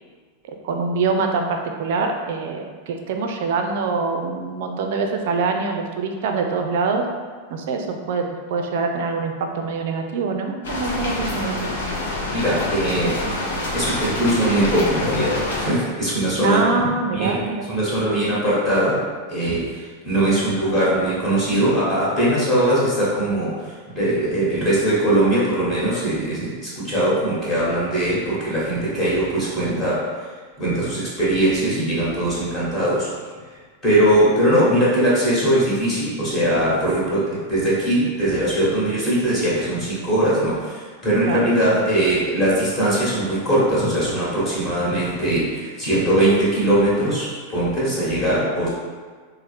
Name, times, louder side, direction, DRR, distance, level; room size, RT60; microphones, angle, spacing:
voice 1, 0.6-7.1 7.5-8.2 8.5-11.7 16.4-17.7 41.2-41.8, right 4 dB, 50° right, 4 dB, 0.4 m, -24 dB
sound 1, 10.6-15.7, left 2 dB, 60° left, 0.6 m, -26 dB
voice 2, 12.3-13.2 13.7-17.4 17.7-19.0 19.3-30.3 30.6-33.1 33.5-33.6 33.8-48.7, right 1 dB, 30° left, -8 dB, 1.2 m, -21 dB
4.0 x 2.0 x 3.3 m, 1.5 s
figure-of-eight pair, 90°, 0 cm